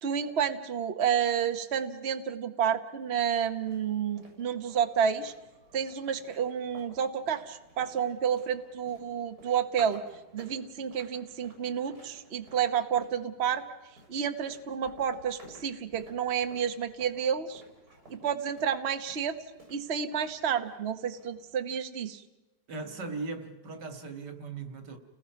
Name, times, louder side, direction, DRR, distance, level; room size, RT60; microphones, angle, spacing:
voice 1, 0.0-5.3 5.7-10.0 10.3-13.6 14.1-17.6 18.1-19.4 19.7-22.2, right 8 dB, 45° right, 1.2 m, -30 dB
sound 1, 3.0-21.5, right 1 dB, 65° right, 7.9 m, -56 dB
voice 2, 22.7-25.0, right 3 dB, 90° right, 2.6 m, -38 dB
30.0 x 20.0 x 5.9 m
omnidirectional pair, 1.8 m